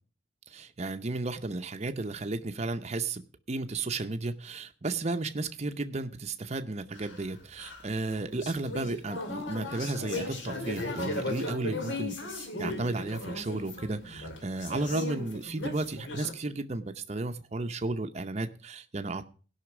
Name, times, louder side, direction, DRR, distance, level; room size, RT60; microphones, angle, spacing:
voice 1, 0.5-3.2 3.5-19.3, right 2 dB, 35° right, 7 dB, 0.7 m, -33 dB
sound 1, 6.9-16.3, left 2 dB, 75° left, 2.3 m, -37 dB
16.5 x 5.8 x 6.1 m, 0.39 s
head